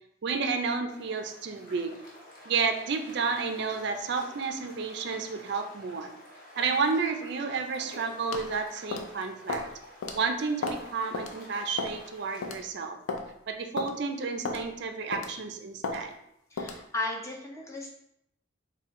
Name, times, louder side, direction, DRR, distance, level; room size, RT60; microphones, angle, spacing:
voice 1, 0.2-2.0 2.5-6.1 6.6-9.7 10.1-13.0 13.5-16.1, right 4 dB, 55° right, 6 dB, 0.4 m, -31 dB
sound 1, 0.9-12.5, left 1 dB, 45° left, 0.9 m, -50 dB
sound 2, 8.3-8.5 8.9-9.1 9.5-9.7 10.0-10.2 10.6-10.8 11.1-11.3 11.8-12.0 12.4-12.6 13.1-13.2 13.8-13.9 14.4-14.6 15.1-15.4 15.8-16.0 16.6-16.8, left 3 dB, 80° left, 0.5 m, -33 dB
voice 2, 16.5-17.9, left 2 dB, 15° left, 0 dB, 0.4 m, -35 dB
4.2 x 2.2 x 3.6 m, 0.77 s
head